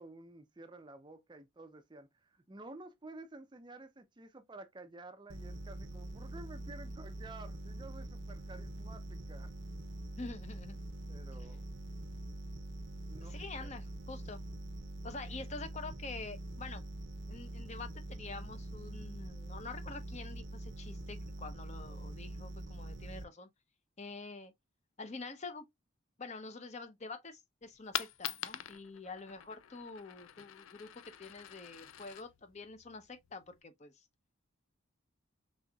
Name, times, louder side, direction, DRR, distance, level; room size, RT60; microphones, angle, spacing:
voice 1, 0.0-9.5 11.1-11.6 13.1-13.7, right 2 dB, 20° right, 0.5 m, -52 dB
sound 1, 5.3-23.2, right 1 dB, 60° right, 0.7 m, -44 dB
voice 2, 10.2-10.8 11.3-11.5 13.2-14.4 15.0-16.8 17.3-23.5 24.0-24.5 25.0-25.7 26.2-30.9 31.2-34.0, left 3 dB, 35° left, 0.6 m, -46 dB
Coin (dropping), 27.6-33.6, left 11 dB, 75° left, 0.4 m, -45 dB
5.3 x 3.6 x 2.3 m
head